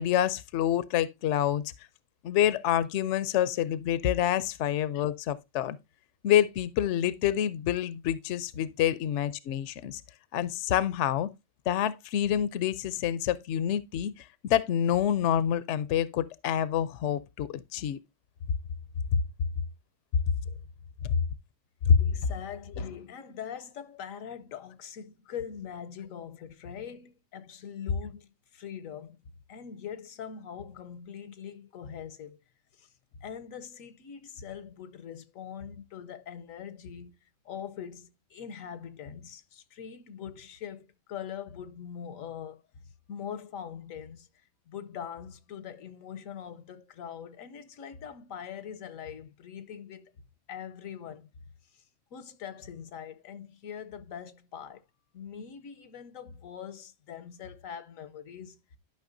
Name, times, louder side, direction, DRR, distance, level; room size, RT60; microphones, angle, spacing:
voice 1, 0.0-1.6 2.2-5.8 6.2-10.0 10.3-11.3 11.7-18.0 19.1-19.2 21.9-22.0, left 10 dB, 65° left, 0.8 m, -27 dB
voice 2, 22.0-29.2 29.5-32.4 32.8-32.9 33.2-37.2 37.4-42.6 43.1-44.3 44.7-50.1 50.5-51.3 51.7-51.8 52.1-54.8 55.1-58.6, left 7 dB, 85° left, 1.2 m, -42 dB
11.5 x 5.5 x 2.6 m
omnidirectional pair, 1.4 m